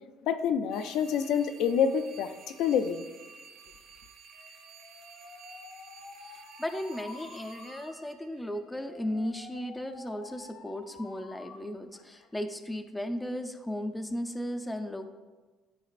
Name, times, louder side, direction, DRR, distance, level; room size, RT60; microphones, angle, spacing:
voice 1, 0.2-3.1, left 7 dB, 65° left, 0.4 m, -27 dB
sound 1, 0.7-8.9, right 5 dB, 60° right, 1.4 m, -53 dB
Alarm, 4.3-11.6 11.9-12.5, left 4 dB, 90° left, 0.7 m, -50 dB
voice 2, 6.3-15.1, left 1 dB, 5° left, 0.4 m, -36 dB
12.5 x 4.3 x 2.4 m
cardioid pair, 145°, 0 cm